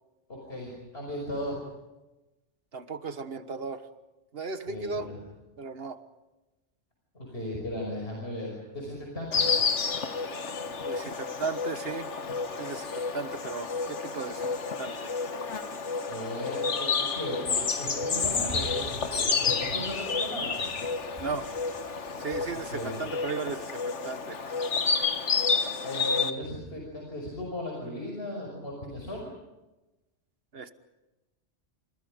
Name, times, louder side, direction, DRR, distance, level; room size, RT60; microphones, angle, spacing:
voice 1, 0.3-1.6 4.7-5.2 7.1-9.5 16.1-20.7 22.7-23.0 25.8-29.3, left 1 dB, 60° left, -1 dB, 5.9 m, -36 dB
voice 2, 2.7-3.8 4.3-5.1 5.6-6.0 10.9-12.1 12.6-14.4 14.8-15.1 21.2-21.5 22.2-24.4 30.5-30.7, right 4 dB, 55° right, 10 dB, 1.5 m, -36 dB
Insect, 9.3-26.3, left 5 dB, 85° left, 1.7 m, -30 dB
Fireworks, 18.2-23.3, equal, 30° right, 6.1 m, -45 dB
29.0 x 27.5 x 5.1 m, 1.0 s
omnidirectional pair, 1.2 m